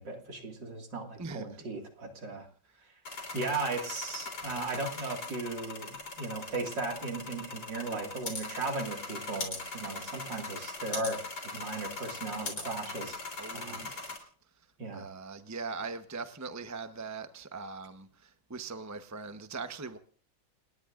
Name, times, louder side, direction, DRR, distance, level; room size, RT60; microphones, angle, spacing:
voice 1, 0.0-2.5 3.3-13.2 13.5-13.8 14.8-15.1, right 3 dB, 60° right, 2.9 m, -37 dB
voice 2, 1.2-1.6 13.4-14.2 14.9-20.0, right 4 dB, 25° right, 0.3 m, -41 dB
sound 1, 3.0-14.2, left 3 dB, 70° left, 4.2 m, -40 dB
29.0 x 19.0 x 2.5 m
omnidirectional pair, 2.2 m